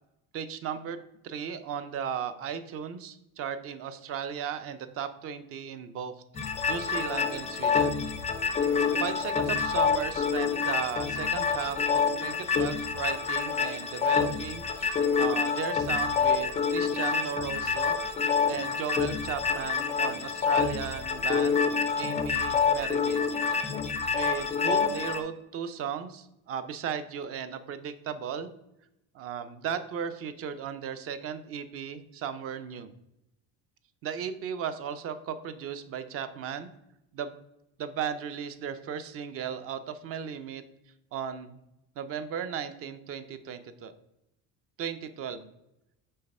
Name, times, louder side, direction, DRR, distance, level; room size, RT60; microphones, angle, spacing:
voice 1, 0.3-1.0 1.2-6.2 6.7-8.0 9.0-18.0 18.5-21.6 22.0-23.3 24.1-28.5 29.1-32.9 34.0-36.7 37.1-37.3 37.8-40.6 41.1-41.6 42.0-43.9 44.8-45.5, right 7 dB, 40° right, 11 dB, 0.5 m, -36 dB
sound 1, 6.3-25.2, left 5 dB, 20° left, 0.4 m, -27 dB
5.5 x 4.2 x 5.3 m, 0.85 s
cardioid pair, 165°, 36 cm